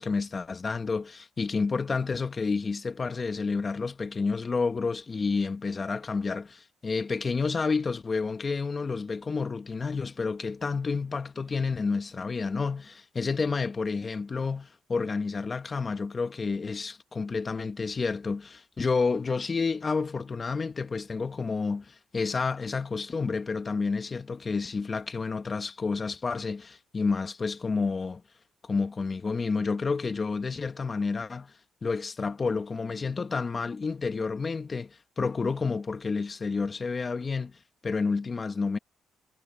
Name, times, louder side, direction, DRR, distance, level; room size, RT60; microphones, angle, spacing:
voice 1, 0.0-28.2 28.6-31.5 31.8-37.6 37.8-38.8, left 4 dB, 35° left, 1.2 m, -30 dB
cardioid pair, 90°, 0 cm